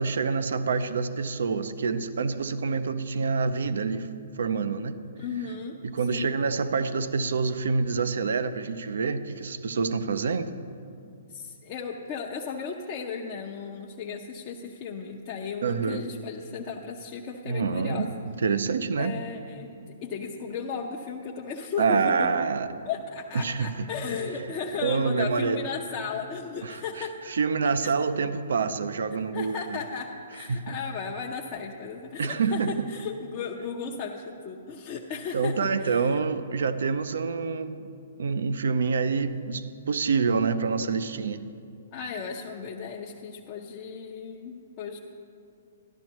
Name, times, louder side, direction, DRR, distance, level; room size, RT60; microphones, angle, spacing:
voice 1, 0.0-4.1 4.4-5.0 5.8-10.5 15.6-16.0 17.5-19.2 21.8-22.7 23.3-23.9 24.8-25.6 26.6-29.8 30.5-30.8 32.2-32.8 35.3-37.8 38.2-41.5, right 5 dB, 70° right, 12 dB, 0.6 m, -27 dB
voice 2, 5.2-5.8 6.1-6.3 11.3-18.1 19.0-19.7 20.0-22.3 22.8-27.3 27.8-27.9 29.1-36.2 41.9-45.0, left 5 dB, 35° left, -1 dB, 0.7 m, -35 dB
13.5 x 11.5 x 3.1 m, 2.4 s
figure-of-eight pair, 125°, 0 cm